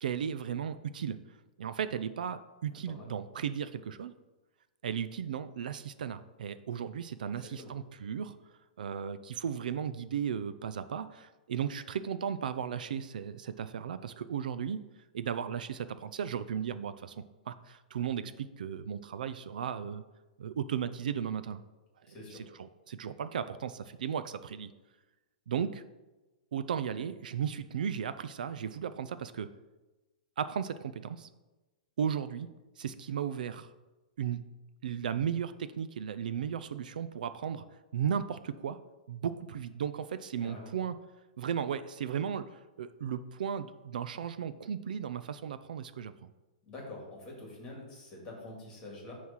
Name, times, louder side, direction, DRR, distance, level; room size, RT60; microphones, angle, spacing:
voice 1, 0.0-1.2 1.6-4.1 4.8-8.4 8.8-14.8 15.1-20.0 20.4-21.6 22.6-24.7 25.5-25.8 26.5-29.5 30.4-31.3 32.0-32.5 32.8-33.7 34.2-34.4 34.8-37.6 37.9-38.8 39.1-40.9 41.4-46.1, right 8 dB, 70° right, 12 dB, 0.4 m, -35 dB
voice 2, 2.7-3.1 7.2-7.7 22.1-22.5 40.4-40.7 46.6-49.1, left 2 dB, 15° left, -2 dB, 1.9 m, -46 dB
9.4 x 3.2 x 5.6 m, 1.1 s
hypercardioid pair, 175°, 5 cm